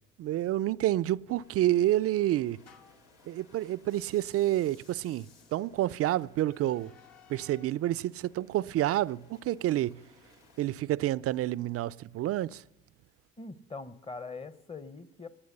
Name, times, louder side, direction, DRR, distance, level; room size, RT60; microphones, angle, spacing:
voice 1, 0.2-2.6 3.3-5.3 5.5-6.9 7.3-10.0 10.6-12.6, right 14 dB, 50° right, 0.4 m, -28 dB
sound 1, 1.3-3.1 3.8-7.8, left 7 dB, 55° left, 1.7 m, -60 dB
sound 2, 1.4-10.8, left 3 dB, 90° left, 1.9 m, -63 dB
voice 2, 13.4-15.3, left 3 dB, 20° left, 0.9 m, -42 dB
18.5 x 8.1 x 6.7 m
supercardioid pair, 75°, 31 cm